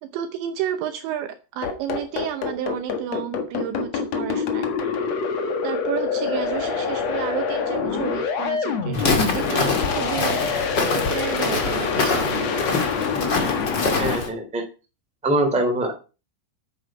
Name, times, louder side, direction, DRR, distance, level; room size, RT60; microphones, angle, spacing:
voice 1, 0.0-4.9 5.6-10.4 11.1-12.6, right 10 dB, 75° right, 8 dB, 2.8 m, -31 dB
sound 1, 1.6-14.2, left 5 dB, 90° left, 1.4 m, -25 dB
Walk footsteps, 8.9-14.3, left 3 dB, 50° left, 1.2 m, -25 dB
voice 2, 14.0-14.6 15.2-15.9, right 1 dB, ahead, 3 dB, 1.5 m, -23 dB
10.5 x 9.3 x 5.7 m, 0.32 s
omnidirectional pair, 5.9 m